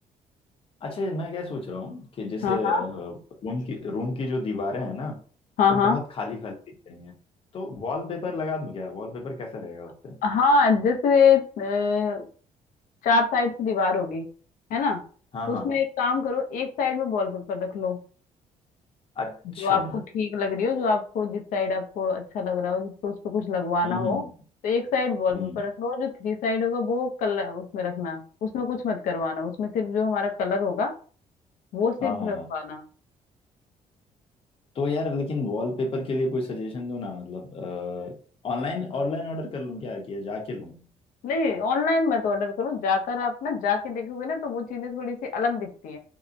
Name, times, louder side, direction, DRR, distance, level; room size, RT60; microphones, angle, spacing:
voice 1, 0.8-5.2 5.7-6.5 6.9-7.1 7.5-10.2 15.3-15.7 19.2-20.0 23.8-24.3 25.3-25.6 32.0-32.5 34.7-38.2 38.4-40.9, left 3 dB, 40° left, 2 dB, 0.7 m, -31 dB
voice 2, 2.4-2.8 5.6-6.0 10.2-12.3 13.0-14.3 14.7-15.0 15.5-18.0 19.6-24.2 24.6-30.9 31.7-32.8 41.2-46.0, left 5 dB, 75° left, 4 dB, 0.6 m, -25 dB
2.8 x 2.0 x 2.5 m, 0.41 s
cardioid pair, 115°, 14 cm